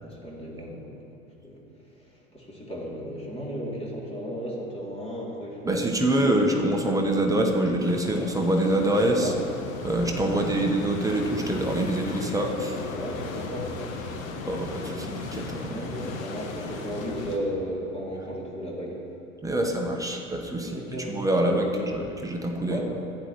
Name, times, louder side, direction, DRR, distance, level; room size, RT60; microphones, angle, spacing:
voice 1, 0.0-1.2 1.4-1.6 2.0-5.8 6.1-6.4 9.2-9.4 10.3-10.7 12.0-14.3 14.6-15.1 15.7-19.0 19.5-19.7 20.6-22.0 22.6-22.9, equal, 15° left, -4 dB, 2.6 m, -35 dB
voice 2, 5.6-9.3 9.8-12.7 14.5-15.7 19.4-20.8 21.1-22.8, right 1 dB, 10° right, 1 dB, 1.0 m, -25 dB
sound 1, 7.8-17.4, left 3 dB, 70° left, 1.2 m, -36 dB
15.0 x 9.9 x 3.0 m, 2.7 s
figure-of-eight pair, 80°, 42 cm